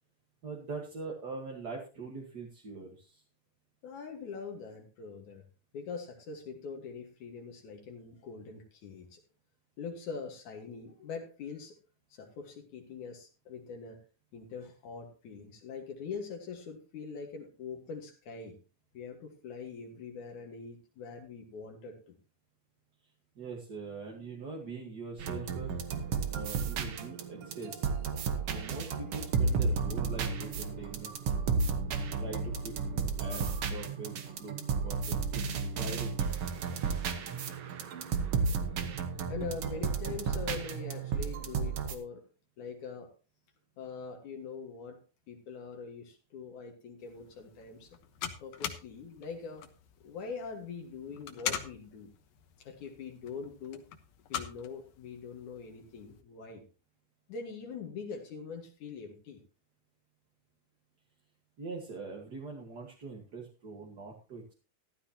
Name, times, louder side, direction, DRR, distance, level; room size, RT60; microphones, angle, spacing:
voice 1, 0.4-3.2 23.4-25.7 26.3-27.9 28.5-31.1 31.7-34.6 34.8-36.2 61.6-64.5, right 4 dB, 40° right, 0 dB, 1.8 m, -43 dB
voice 2, 3.8-5.4 5.7-9.2 9.8-11.8 12.1-14.0 14.3-18.6 18.9-22.2 39.3-42.2 42.6-43.1 43.8-45.0 45.3-48.0 48.4-49.6 50.0-52.1 52.6-53.8 54.3-56.6 57.3-59.4, left 5 dB, 70° left, 2 dB, 3.0 m, -43 dB
sound 1, 25.2-41.9, right 5 dB, 55° right, 1.9 m, -33 dB
sound 2, 47.0-56.2, left 9 dB, 85° left, 2.8 m, -43 dB
14.5 x 12.5 x 2.9 m, 0.34 s
omnidirectional pair, 3.7 m